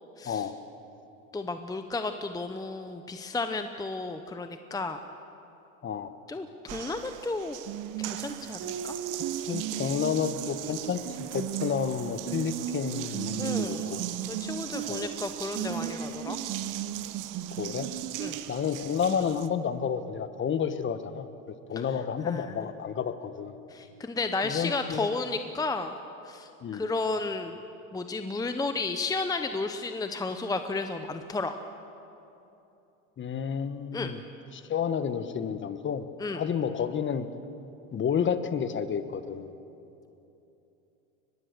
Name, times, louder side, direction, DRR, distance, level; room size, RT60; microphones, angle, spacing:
voice 1, 0.2-0.5 5.8-6.1 9.4-14.0 14.9-15.1 17.5-17.9 18.5-21.3 21.7-23.6 24.4-25.1 26.6-26.8 33.2-34.2 34.5-36.1 36.3-37.3 37.9-39.5, left 7 dB, 30° left, 11 dB, 1.3 m, -30 dB
voice 2, 1.3-5.0 6.3-7.6 8.0-8.9 13.4-14.0 14.3-16.4 18.2-18.4 22.2-22.6 23.7-25.9 26.2-27.6 27.9-31.6 33.9-34.1 36.2-36.4, left 3 dB, 10° left, 8 dB, 0.9 m, -33 dB
Water tap faucet, 6.7-19.5, right 11 dB, 50° right, 1.2 m, -35 dB
23.0 x 20.5 x 6.8 m, 2.9 s
hypercardioid pair, 95°, 39 cm